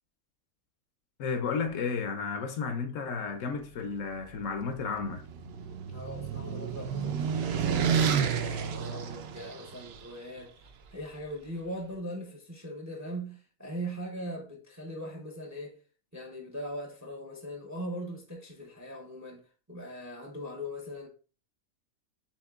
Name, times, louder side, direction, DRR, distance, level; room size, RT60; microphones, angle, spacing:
voice 1, 1.2-5.2, left 5 dB, 70° left, 0.9 m, -32 dB
sound 1, 4.7-10.0, right 7 dB, 65° right, 0.6 m, -30 dB
voice 2, 5.9-15.8 16.1-21.1, equal, 20° right, 0.5 m, -40 dB
7.2 x 2.8 x 2.4 m
omnidirectional pair, 1.5 m